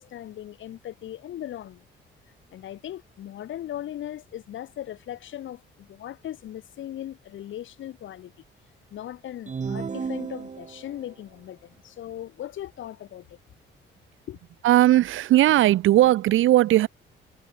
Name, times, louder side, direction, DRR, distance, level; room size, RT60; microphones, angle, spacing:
voice 1, 0.0-1.8 2.5-8.3 8.9-13.4 14.3-14.4, left 12 dB, 75° left, 7.7 m, -38 dB
sound 1, 9.5-11.0, right 5 dB, 35° right, 3.4 m, -33 dB
voice 2, 14.6-16.9, right 14 dB, 85° right, 2.7 m, -18 dB
cardioid pair, 90°, 20 cm